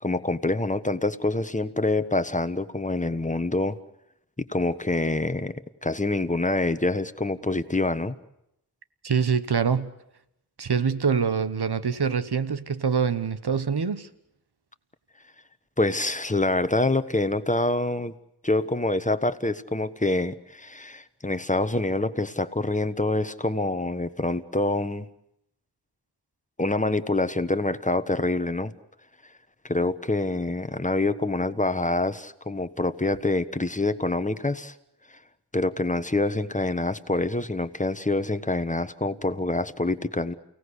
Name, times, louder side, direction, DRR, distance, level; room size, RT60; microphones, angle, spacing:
voice 1, 0.0-3.8 4.5-5.5 5.8-8.1 15.8-18.1 18.4-25.1 26.6-28.7 29.6-34.7 35.5-40.3, left 2 dB, 20° left, 1.3 m, -26 dB
voice 2, 9.0-9.9 10.6-14.1, right 6 dB, 80° right, 1.3 m, -25 dB
29.5 x 18.0 x 8.2 m
wide cardioid pair, 65°, 39 cm